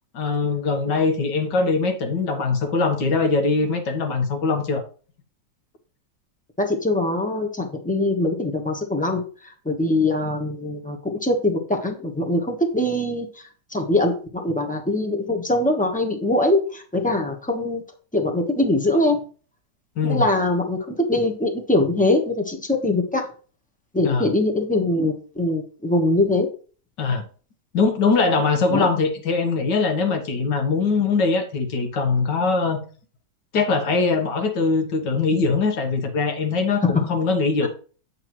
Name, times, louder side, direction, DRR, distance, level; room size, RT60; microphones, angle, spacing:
voice 1, 0.1-4.8 20.0-20.2 24.0-24.3 27.0-27.2 27.7-32.8 33.5-37.7, left 4 dB, 75° left, 5 dB, 1.8 m, -22 dB
voice 2, 6.6-9.2 9.6-13.3 13.7-17.8 18.1-19.2 20.0-23.2 23.9-26.5 28.7-28.9 36.8-36.9 37.6-37.7, left 2 dB, 5° left, 3 dB, 0.8 m, -22 dB
8.2 x 6.7 x 3.1 m, 0.40 s
omnidirectional pair, 1.9 m